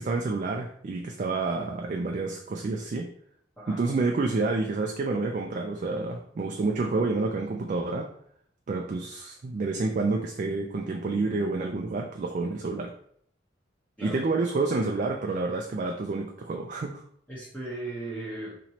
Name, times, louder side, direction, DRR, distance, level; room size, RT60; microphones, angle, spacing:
voice 1, 0.0-3.1 3.7-8.1 8.7-12.9 14.0-16.9, right 3 dB, 45° right, 2 dB, 0.3 m, -29 dB
voice 2, 17.3-18.6, right 2 dB, 10° left, -9 dB, 1.0 m, -37 dB
4.3 x 3.0 x 2.8 m, 0.65 s
head